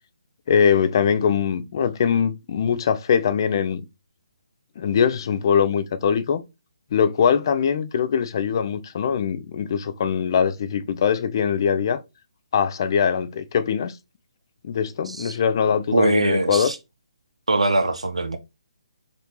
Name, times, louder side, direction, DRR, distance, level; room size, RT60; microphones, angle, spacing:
voice 1, 0.5-3.8 4.8-6.4 6.9-12.0 12.5-13.9 14.6-16.7, left 7 dB, 40° left, 0.4 m, -22 dB
voice 2, 15.1-15.4 15.9-16.8 17.5-18.4, right 2 dB, 75° right, 0.6 m, -22 dB
4.3 x 2.6 x 2.8 m
figure-of-eight pair, 140°, 3 cm